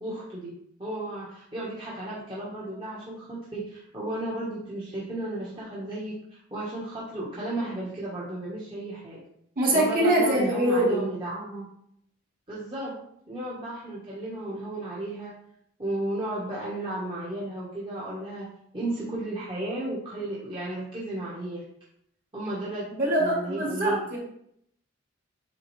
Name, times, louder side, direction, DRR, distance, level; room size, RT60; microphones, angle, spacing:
voice 1, 0.0-0.5 0.8-9.2 9.7-11.7 12.5-12.9 13.3-15.3 15.8-18.5 18.7-21.6 22.3-22.9 23.2-24.0, right 1 dB, 25° right, -7 dB, 1.2 m, -34 dB
voice 2, 9.6-11.1 22.9-24.2, right 1 dB, 45° right, -3 dB, 2.0 m, -23 dB
8.4 x 3.7 x 3.2 m, 0.71 s
head